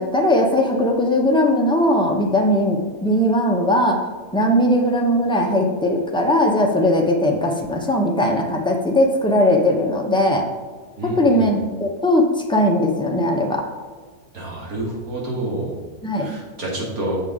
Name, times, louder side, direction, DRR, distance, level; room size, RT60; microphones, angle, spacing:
voice 1, 0.0-4.0 4.3-10.4 11.0-13.6 16.0-16.3, left 1 dB, 5° left, 0 dB, 0.3 m, -19 dB
voice 2, 11.0-11.4 14.3-15.7 16.2-17.2, right 1 dB, 70° right, -4 dB, 2.4 m, -28 dB
7.2 x 6.5 x 3.6 m, 1.4 s
omnidirectional pair, 1.6 m